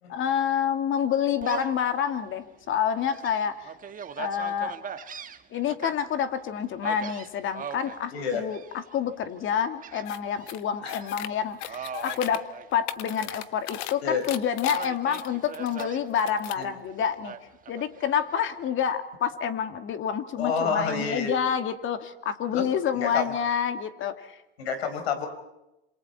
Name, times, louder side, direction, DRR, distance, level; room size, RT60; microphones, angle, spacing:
voice 1, 0.1-3.7 4.2-4.7 5.5-12.4 12.7-17.3 17.7-24.4, left 8 dB, 40° left, 8 dB, 2.6 m, -28 dB
Gull seagull, 1.4-1.8 2.4-2.5 3.0-5.9 6.8-8.0 8.5-9.0 9.8-10.5 10.9-11.1 11.7-13.2 13.5-14.3 14.6-16.0 17.2-18.3, right 7 dB, 25° right, 1.8 m, -40 dB
voice 2, 8.1-8.4 10.8-11.0 14.0-14.2 16.6-16.7 20.4-21.3 22.5-22.7 22.9-23.2 24.6-25.3, left 6 dB, 85° left, 8 dB, 4.7 m, -28 dB
sound 1, 10.1-10.2 10.5-11.3 11.6-12.4 12.7-13.9 14.2-15.8 16.2-16.6, left 13 dB, 60° left, 1.4 m, -37 dB
27.5 x 27.5 x 4.4 m, 0.91 s
hypercardioid pair, 105°, 30 cm